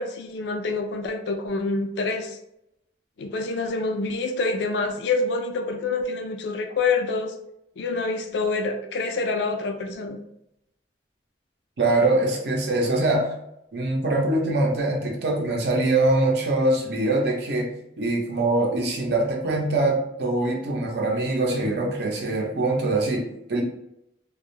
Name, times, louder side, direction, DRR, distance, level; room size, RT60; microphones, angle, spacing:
voice 1, 0.0-2.4 3.2-7.3 7.8-10.2, left 3 dB, 80° left, 5 dB, 0.4 m, -27 dB
voice 2, 11.8-13.3 13.7-17.7 18.0-23.6, right 2 dB, 70° right, 0 dB, 0.6 m, -23 dB
2.3 x 2.0 x 3.0 m, 0.81 s
head